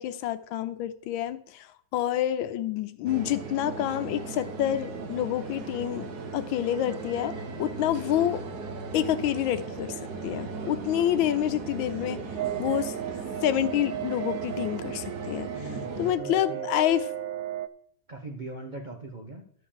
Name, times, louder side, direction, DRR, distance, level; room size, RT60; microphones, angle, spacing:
voice 1, 0.0-6.1 6.3-8.4 8.9-9.9 10.2-12.2 12.6-12.9 13.4-15.6 16.0-17.1, left 11 dB, 80° left, 1.5 m, -28 dB
sound 1, 3.1-16.1, right 4 dB, 55° right, 1.6 m, -37 dB
sound 2, 12.4-17.7, right 12 dB, 75° right, 0.8 m, -35 dB
voice 2, 15.5-16.7 18.1-19.4, right 2 dB, 35° right, 0.8 m, -40 dB
11.5 x 4.5 x 7.4 m
omnidirectional pair, 2.1 m